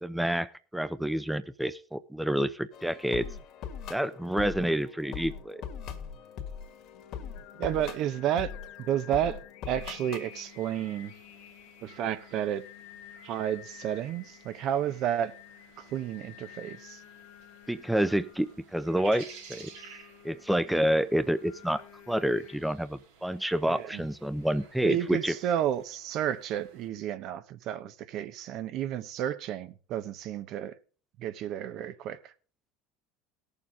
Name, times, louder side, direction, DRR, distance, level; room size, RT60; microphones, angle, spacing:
voice 1, 0.0-3.3 3.9-5.6 17.7-19.7 20.2-21.8 22.1-25.3, right 1 dB, 5° right, 0.6 m, -28 dB
sound 1, 2.7-10.3, left 7 dB, 55° left, 1.8 m, -41 dB
Singing, 6.6-22.6, left 13 dB, 70° left, 1.2 m, -52 dB
voice 2, 7.6-8.5 8.8-9.4 9.7-11.1 11.8-12.6 13.2-15.3 15.8-17.0 23.7-24.0 24.8-30.7 31.2-32.3, right 10 dB, 60° right, 1.0 m, -31 dB
sound 2, 10.3-26.9, right 6 dB, 85° right, 4.1 m, -55 dB
18.0 x 7.0 x 3.7 m
supercardioid pair, 90°, 0 cm